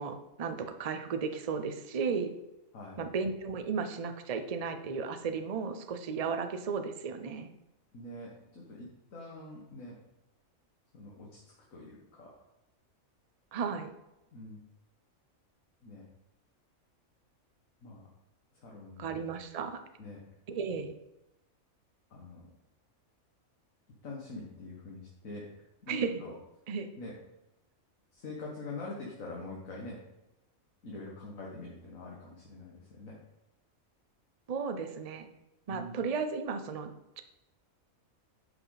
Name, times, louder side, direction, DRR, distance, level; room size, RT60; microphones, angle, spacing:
voice 1, 0.0-2.3 3.0-7.5 13.5-13.9 19.0-19.8 20.5-20.9 25.9-26.1 26.7-26.9 34.5-35.3 35.7-36.9, right 5 dB, 40° right, 8 dB, 0.5 m, -34 dB
voice 2, 7.9-10.0 10.9-11.4 11.7-12.3 14.3-14.6 15.8-16.0 17.8-18.0 18.6-19.2 20.0-20.2 22.1-22.5 24.0-25.5 25.8-26.3 27.0-27.2 28.1-30.0 30.8-33.2 35.7-36.0, left 2 dB, 70° left, -3 dB, 1.9 m, -44 dB
9.7 x 5.9 x 4.0 m, 0.91 s
omnidirectional pair, 1.4 m